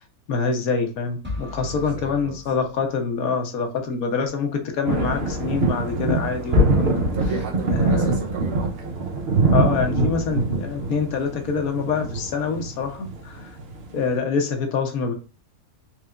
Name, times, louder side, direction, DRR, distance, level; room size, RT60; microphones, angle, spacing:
voice 1, 0.3-7.0 7.7-8.1 9.5-13.5 13.9-15.1, left 5 dB, 75° left, 1.3 m, -25 dB
sound 1, 1.2-3.3, left 3 dB, 10° right, 0.8 m, -37 dB
voice 2, 1.5-2.4 7.0-8.9, right 6 dB, 85° right, 1.3 m, -35 dB
sound 2, 4.9-14.0, right 2 dB, 50° right, 0.9 m, -23 dB
4.4 x 3.2 x 2.4 m
omnidirectional pair, 1.5 m